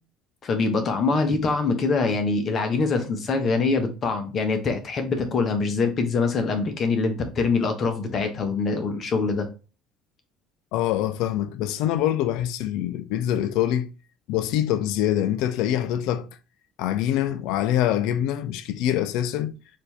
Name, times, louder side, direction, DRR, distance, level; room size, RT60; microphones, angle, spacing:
voice 1, 0.4-9.5, left 4 dB, 45° left, 1.0 m, -24 dB
voice 2, 10.7-13.9 14.3-16.3 16.8-19.5, left 11 dB, 70° left, 0.3 m, -24 dB
4.3 x 2.7 x 3.4 m
hypercardioid pair, 65°, 0 cm